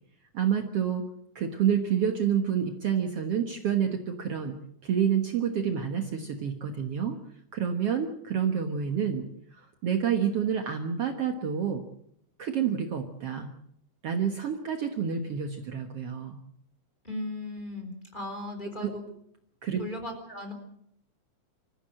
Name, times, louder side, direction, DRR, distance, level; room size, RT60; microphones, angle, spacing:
voice 1, 0.3-1.1 1.4-4.6 4.8-7.2 7.5-11.8 12.4-13.5 14.0-16.4 18.8-18.9 19.6-19.8, right 8 dB, 55° right, 5 dB, 2.1 m, -28 dB
voice 2, 17.0-19.0 19.8-20.5, left 1 dB, 15° left, 5 dB, 4.0 m, -37 dB
26.5 x 14.5 x 7.7 m, 0.73 s
omnidirectional pair, 3.5 m